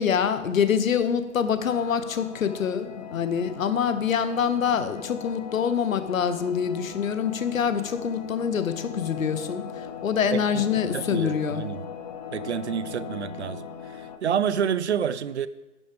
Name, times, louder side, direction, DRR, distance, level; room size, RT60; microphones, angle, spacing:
voice 1, 0.0-9.6 10.0-11.6, left 7 dB, 60° left, 1.0 m, -25 dB
sound 1, 1.4-14.2, left 6 dB, 30° left, 0.5 m, -39 dB
voice 2, 10.3-10.7 10.9-11.9 12.3-13.6 14.2-15.5, right 8 dB, 50° right, 0.5 m, -28 dB
10.5 x 9.2 x 3.4 m
figure-of-eight pair, 135°, 45 cm